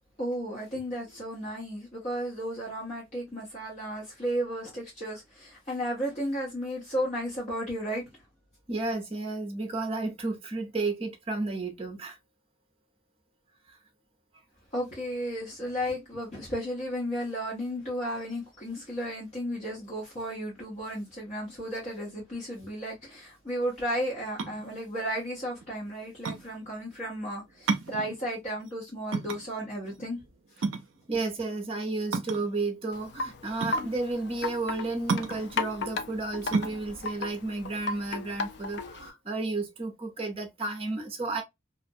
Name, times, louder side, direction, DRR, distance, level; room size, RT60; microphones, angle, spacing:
voice 1, 0.2-8.0 14.7-30.2 30.5-30.6, equal, 35° left, 0.8 m, -34 dB
voice 2, 8.7-12.2 13.7-13.8 31.1-41.4, right 3 dB, 30° right, 0.6 m, -32 dB
sound 1, 24.2-38.6, right 4 dB, 75° right, 0.4 m, -34 dB
Wind chime, 32.9-39.1, left 3 dB, 55° left, 0.4 m, -36 dB
2.4 x 2.1 x 2.6 m
head